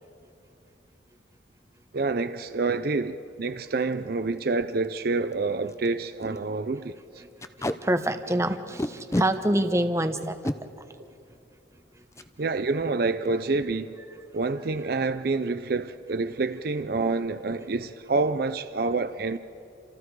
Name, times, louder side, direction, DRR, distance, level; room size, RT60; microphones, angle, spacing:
voice 1, 1.9-6.9 12.4-13.9 14.3-19.4, right 3 dB, 55° right, 0.5 m, -27 dB
Packing tape duct tape, 3.7-3.9 4.4-4.5 4.7-4.9 5.3-5.4 5.7-5.9 6.2-6.4 7.4-7.8 8.8-9.3 10.2-10.6 12.1-12.3 12.7-12.8 13.1-13.5, left 1 dB, 15° left, 0.6 m, -29 dB
voice 2, 7.6-10.4, right 1 dB, 15° right, 0.9 m, -26 dB
28.5 x 27.5 x 4.8 m
head